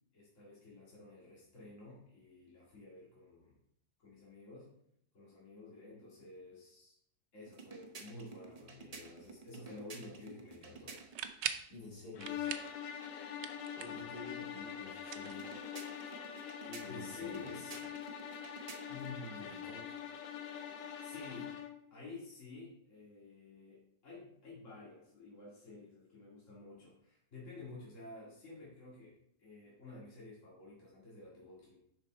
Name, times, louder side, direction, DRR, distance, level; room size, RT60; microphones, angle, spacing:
voice 1, 0.1-3.6 4.0-4.7 5.1-7.0 7.3-10.9 16.8-17.8 18.9-19.6 20.8-21.5 21.9-31.8, left 3 dB, 45° left, -7 dB, 2.4 m, -51 dB
sound 1, 7.5-11.4 15.3-19.2, right 4 dB, 55° right, 0.4 m, -52 dB
sound 2, 11.0-11.7 12.2-12.8 13.1-14.1 15.0-15.9, right 10 dB, 75° right, 1.2 m, -42 dB
voice 2, 11.7-12.5 13.8-15.6 16.6-17.4 19.5-19.8, left 3 dB, 60° left, -5 dB, 3.0 m, -50 dB
sound 3, 12.1-21.8, left 8 dB, 80° left, 1.4 m, -44 dB
6.8 x 5.6 x 4.3 m, 0.72 s
omnidirectional pair, 1.9 m